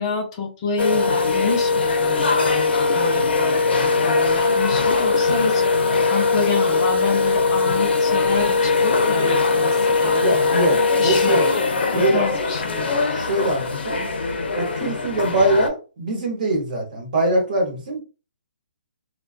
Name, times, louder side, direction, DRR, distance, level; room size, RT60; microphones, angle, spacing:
voice 1, 0.0-5.7 6.1-10.5 11.0-11.5 11.9-13.0, left 4 dB, 30° left, 0.5 m, -28 dB
sound 1, 0.8-15.7, left 4 dB, 80° left, 0.6 m, -20 dB
voice 2, 10.2-11.4 11.9-12.3 13.1-14.0 14.5-18.0, right 1 dB, 50° right, 1.1 m, -22 dB
2.4 x 2.2 x 2.4 m
hypercardioid pair, 165°, 6 cm